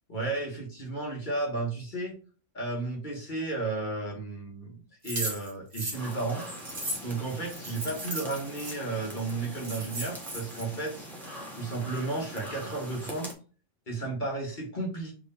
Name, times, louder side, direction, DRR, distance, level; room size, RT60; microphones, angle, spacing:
voice 1, 0.1-2.2 2.5-6.4 7.0-11.1 11.5-13.3 13.9-15.1, right 3 dB, 40° left, -2 dB, 1.4 m, -33 dB
sound 1, 5.0-8.8 9.3-9.4 9.6-10.6, right 1 dB, 55° right, 1.8 m, -36 dB
sound 2, 5.9-13.3, equal, ahead, 1.0 m, -43 dB
3.6 x 3.1 x 4.1 m, 0.37 s
omnidirectional pair, 1.3 m